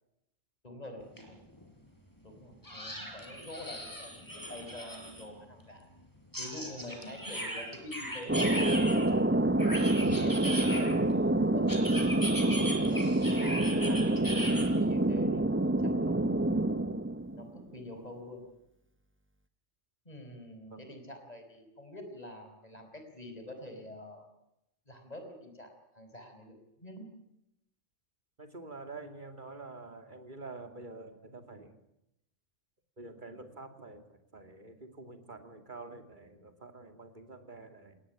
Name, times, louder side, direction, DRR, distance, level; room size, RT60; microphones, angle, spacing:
voice 1, 0.6-1.5 2.2-5.9 6.4-9.9 10.2-11.2 11.5-11.8 12.4-13.2 13.8-16.3 17.3-18.4 20.1-24.3 24.9-27.1, left 1 dB, 30° left, 5 dB, 5.4 m, -46 dB
sound 1, 1.2-1.3 1.6-1.7 2.6-5.2 6.3-9.1 9.6-11.1 11.7-14.6, equal, 15° left, 5.1 m, -38 dB
Thunder, 8.3-17.6, right 1 dB, 10° right, 0.7 m, -27 dB
voice 2, 28.4-31.8 33.0-38.0, right 3 dB, 40° right, 7 dB, 2.8 m, -47 dB
19.5 x 19.5 x 9.9 m, 0.83 s
omnidirectional pair, 1.3 m